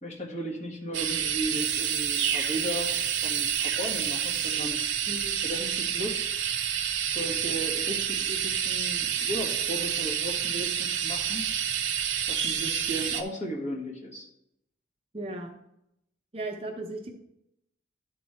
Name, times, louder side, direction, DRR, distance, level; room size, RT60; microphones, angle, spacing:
voice 1, 0.0-4.8 5.4-6.3 7.0-11.4 12.3-14.3, right 1 dB, 40° left, -2 dB, 1.7 m, -36 dB
sound 1, 0.9-13.2, right 9 dB, 85° right, 0.7 m, -29 dB
voice 2, 15.1-15.6 16.3-17.1, right 2 dB, 30° right, 2 dB, 0.8 m, -36 dB
11.5 x 3.8 x 4.3 m, 0.79 s
head